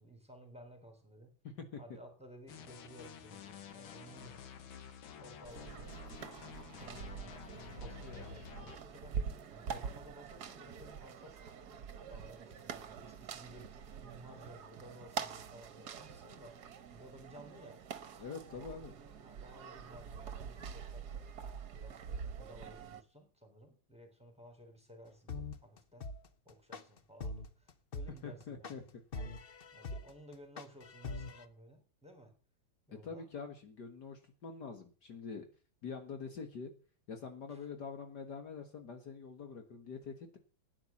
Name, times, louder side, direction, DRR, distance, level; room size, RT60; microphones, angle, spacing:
voice 1, 0.0-1.3 1.8-4.5 5.2-5.9 6.8-9.2 9.5-16.6 16.9-21.3 21.7-26.1 26.5-28.8 29.1-29.4 29.7-32.3 32.9-33.3 37.5-37.7, equal, 5° right, 5 dB, 3.6 m, -56 dB
voice 2, 1.4-1.8 18.2-18.9 28.1-28.9 33.0-35.5 35.8-36.7 37.1-40.4, left 5 dB, 60° left, 6 dB, 2.1 m, -45 dB
sound 1, 2.5-8.8, left 8 dB, 85° left, 2.1 m, -51 dB
sound 2, 5.4-23.0, right 6 dB, 60° right, 1.5 m, -45 dB
sound 3, 25.3-31.4, left 3 dB, 45° left, 0.8 m, -43 dB
13.0 x 9.8 x 7.1 m, 0.39 s
omnidirectional pair, 2.1 m